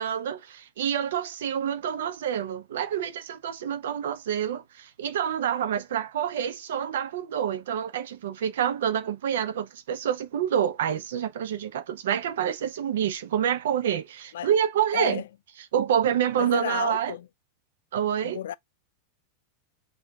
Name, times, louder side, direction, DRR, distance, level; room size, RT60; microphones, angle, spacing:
voice 1, 0.0-15.2 15.7-17.1 17.9-18.4, right 9 dB, 90° right, 0.7 m, -27 dB
voice 2, 14.9-15.2 16.4-17.3 18.2-18.5, left 12 dB, 85° left, 0.3 m, -32 dB
6.1 x 2.4 x 2.3 m
supercardioid pair, 165°, 0 cm